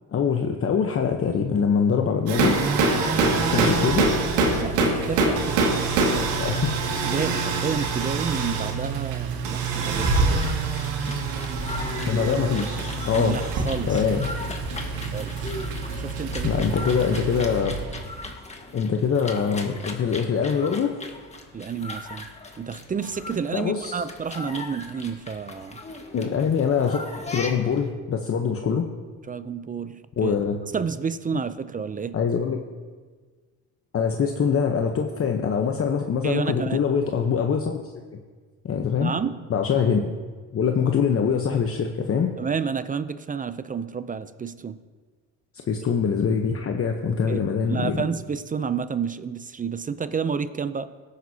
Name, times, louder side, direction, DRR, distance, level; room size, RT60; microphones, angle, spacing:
voice 1, 0.1-2.6 3.5-4.1 6.4-6.7 12.1-13.4 13.9-14.3 16.4-17.8 18.7-20.9 23.5-23.9 26.1-28.9 30.2-30.6 32.1-32.6 33.9-38.2 38.6-39.1 39.5-40.1 40.5-42.3 45.7-48.0, left 6 dB, 35° left, 3 dB, 1.0 m, -24 dB
sound 1, 2.3-17.4, right 3 dB, 85° right, 2.2 m, -25 dB
Engine, 2.6-18.3, right 6 dB, 70° right, 1.2 m, -32 dB
voice 2, 2.7-3.7 4.6-6.6 7.0-10.5 13.2-14.0 15.1-15.5 16.0-16.5 21.5-22.3 22.6-25.8 29.3-30.4 30.7-32.2 36.2-36.8 39.0-39.4 42.4-44.8 47.3-47.4 47.7-50.9, right 6 dB, 20° right, 14 dB, 0.5 m, -30 dB
sound 2, 9.7-27.9, left 2 dB, 15° left, 1.6 m, -39 dB
18.0 x 9.4 x 2.8 m, 1.5 s
supercardioid pair, 90°, 38 cm